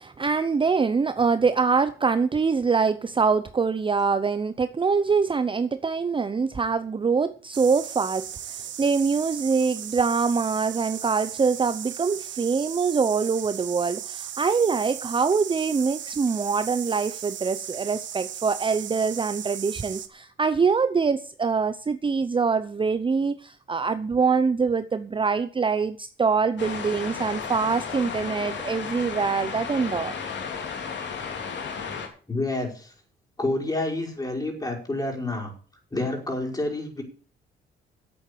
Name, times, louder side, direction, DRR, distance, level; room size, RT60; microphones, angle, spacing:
voice 1, 0.0-30.1, right 5 dB, 25° right, 0.7 m, -24 dB
sound 1, 7.5-20.1, right 10 dB, 65° right, 1.5 m, -37 dB
sound 2, 26.6-32.1, left 6 dB, 65° left, 3.4 m, -33 dB
voice 2, 32.3-32.9 33.4-35.5 35.9-37.0, left 2 dB, 20° left, 5.4 m, -28 dB
10.0 x 8.4 x 8.5 m
cardioid pair, 90°, 20 cm